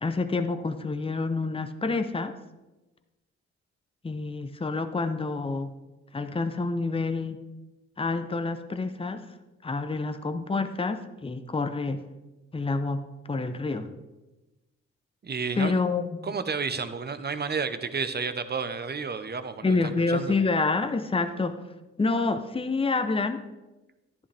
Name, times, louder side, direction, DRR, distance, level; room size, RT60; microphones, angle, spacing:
voice 1, 0.0-2.3 4.0-5.7 6.1-7.4 8.0-9.3 9.6-12.0 12.5-13.9 15.6-16.3 19.6-21.6 22.0-23.4, left 3 dB, 20° left, 9 dB, 0.8 m, -28 dB
voice 2, 15.2-15.7 16.2-20.3, right 5 dB, 35° right, 11 dB, 0.9 m, -31 dB
11.0 x 10.0 x 3.4 m, 1.1 s
cardioid pair, 70°, 29 cm